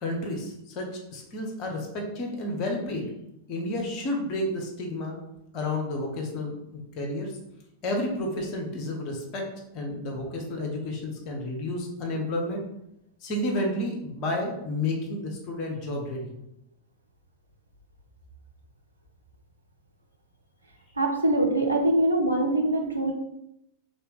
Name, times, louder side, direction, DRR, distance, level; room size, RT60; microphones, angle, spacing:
voice 1, 0.0-3.1 3.5-5.2 5.5-7.3 7.8-12.6 13.2-16.3, left 1 dB, 40° left, 1 dB, 1.0 m, -31 dB
voice 2, 21.0-23.1, right 1 dB, 80° right, 1 dB, 0.6 m, -23 dB
3.4 x 2.7 x 3.8 m, 0.81 s
figure-of-eight pair, 90°, 0 cm